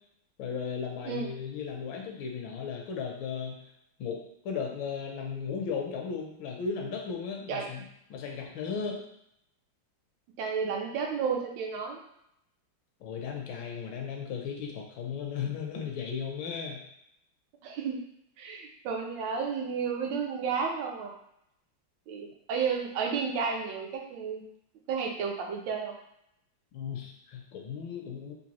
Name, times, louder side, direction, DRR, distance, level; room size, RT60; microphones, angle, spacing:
voice 1, 0.4-3.6 4.0-7.8 8.1-9.0 13.0-16.8 26.7-28.3, left 6 dB, 80° left, 1 dB, 1.5 m, -36 dB
voice 2, 10.4-12.0 17.6-18.0 18.4-21.2 22.1-24.4 24.9-26.0, right 6 dB, 75° right, 1 dB, 1.4 m, -32 dB
3.9 x 2.6 x 2.9 m, 0.76 s
omnidirectional pair, 2.2 m